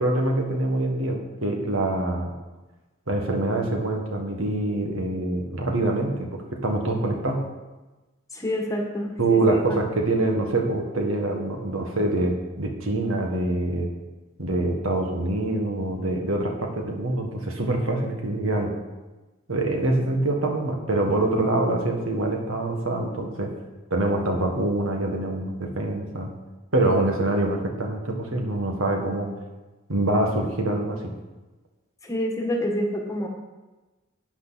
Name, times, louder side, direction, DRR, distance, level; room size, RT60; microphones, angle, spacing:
voice 1, 0.0-2.3 3.1-7.4 9.2-13.9 14.4-18.7 19.5-23.5 23.9-26.3 26.7-29.3 29.9-31.1, right 2 dB, 70° right, 2 dB, 1.7 m, -25 dB
voice 2, 8.3-9.8 32.0-33.3, equal, 15° left, 1 dB, 1.5 m, -27 dB
12.0 x 8.9 x 4.2 m, 1.2 s
head